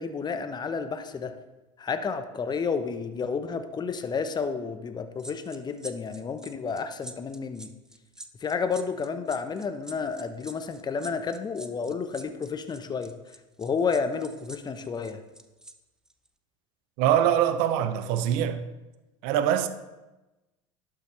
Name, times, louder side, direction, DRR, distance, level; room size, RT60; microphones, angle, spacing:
voice 1, 0.0-1.3 1.8-7.7 8.4-13.1 13.6-15.2, left 5 dB, 25° left, 0.8 m, -31 dB
sound 1, 5.2-15.7 16.1-16.3, right 1 dB, 5° right, 0.6 m, -46 dB
voice 2, 17.0-18.6 19.2-19.7, right 10 dB, 60° right, 0.7 m, -23 dB
11.5 x 5.8 x 3.1 m
hypercardioid pair, 80°, 17 cm